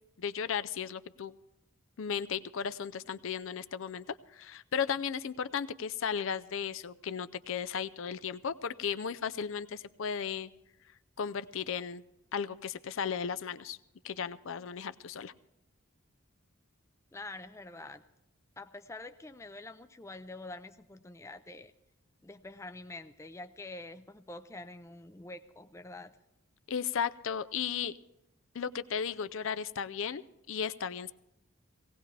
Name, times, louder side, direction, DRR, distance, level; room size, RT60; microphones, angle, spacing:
voice 1, 0.2-1.3 2.0-10.5 11.2-12.0 12.3-13.8 14.0-15.3 26.7-27.9 28.5-31.1, left 7 dB, 65° left, 13 dB, 0.5 m, -35 dB
voice 2, 17.1-18.0 18.6-21.7 22.2-26.2, left 2 dB, 15° left, 9 dB, 0.4 m, -46 dB
18.5 x 17.0 x 3.3 m, 0.85 s
head